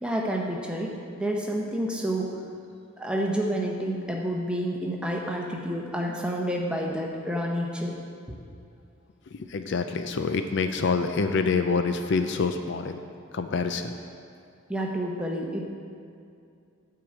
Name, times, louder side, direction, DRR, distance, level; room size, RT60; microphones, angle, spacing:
voice 1, 0.0-2.4 3.0-8.0 14.7-15.7, equal, 5° right, -1 dB, 0.8 m, -29 dB
voice 2, 9.3-13.0 13.3-13.9, left 4 dB, 55° left, 7 dB, 0.4 m, -26 dB
9.1 x 4.9 x 7.5 m, 2.5 s
head